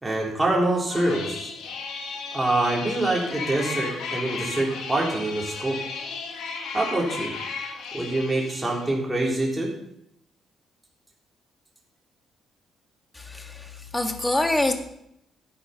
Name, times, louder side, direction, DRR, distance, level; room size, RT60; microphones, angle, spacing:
voice 1, 0.0-1.5 2.3-5.8 6.7-7.3 7.9-9.7, right 2 dB, 10° right, -3 dB, 3.5 m, -25 dB
sound 1, 0.9-8.9, left 4 dB, 85° left, 2.2 m, -34 dB
voice 2, 13.2-14.7, left 2 dB, 15° left, 5 dB, 1.7 m, -25 dB
11.5 x 8.4 x 5.7 m, 0.76 s
cardioid pair, 90°, 0 cm